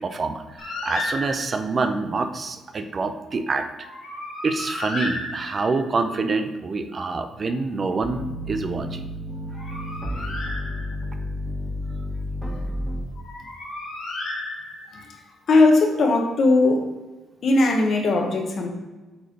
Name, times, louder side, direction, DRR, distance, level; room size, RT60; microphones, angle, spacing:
voice 1, 0.0-3.7 4.4-9.0 9.5-9.8, right 3 dB, 40° right, 8 dB, 0.6 m, -26 dB
Bird, 0.6-1.7 3.8-5.9 9.3-11.2 13.2-15.1, left 2 dB, 90° left, 2.1 m, -33 dB
sound 1, 8.0-13.0, left 1 dB, 10° right, 1.5 m, -31 dB
voice 2, 14.9-15.2 15.5-16.9 17.4-18.7, left 2 dB, 55° left, 3 dB, 1.2 m, -19 dB
8.0 x 3.3 x 3.9 m, 1.2 s
cardioid pair, 90°, 0 cm